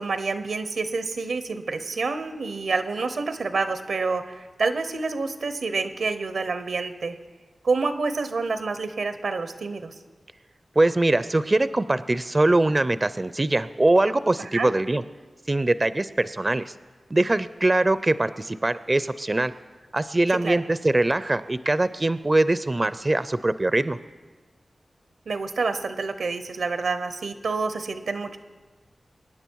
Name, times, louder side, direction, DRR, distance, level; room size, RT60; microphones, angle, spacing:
voice 1, 0.0-7.2 7.6-9.9 14.5-14.7 20.4-20.6 25.3-28.4, right 4 dB, 85° right, 10 dB, 0.9 m, -28 dB
voice 2, 10.8-15.0 15.5-16.7 17.1-19.5 19.9-24.0, right 2 dB, 35° right, 14 dB, 0.5 m, -22 dB
24.0 x 9.6 x 4.6 m, 1.4 s
cardioid pair, 45°, 0 cm